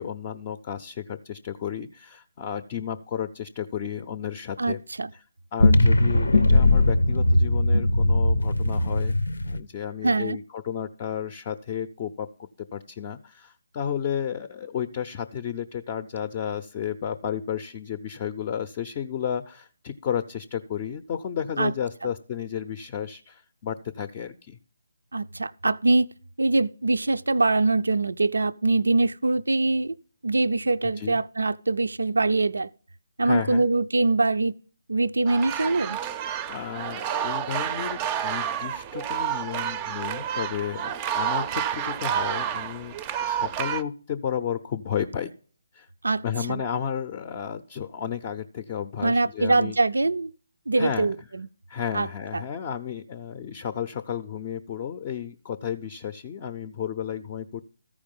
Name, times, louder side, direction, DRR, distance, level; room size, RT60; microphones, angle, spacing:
voice 1, 0.0-4.8 5.1-5.2 5.5-9.1 9.4-12.3 12.6-24.6 30.8-31.2 33.2-33.7 36.5-42.9 43.2-45.3 45.7-45.9 46.2-49.8 50.8-51.2 51.7-57.6, left 8 dB, 30° left, 0.5 m, -32 dB
voice 2, 4.6-5.1 10.0-10.4 21.6-21.7 25.1-26.1 26.4-29.9 30.2-32.7 33.2-34.5 34.9-36.0 46.0-46.6 49.0-50.3 50.7-51.5 51.9-52.1 52.3-52.4, right 3 dB, 75° right, 0.4 m, -23 dB
sound 1, 5.6-9.6, left 2 dB, 80° left, 0.6 m, -19 dB
sound 2, 35.3-43.8, right 9 dB, 20° right, 0.5 m, -29 dB
14.0 x 4.9 x 5.3 m
figure-of-eight pair, 145°, 0 cm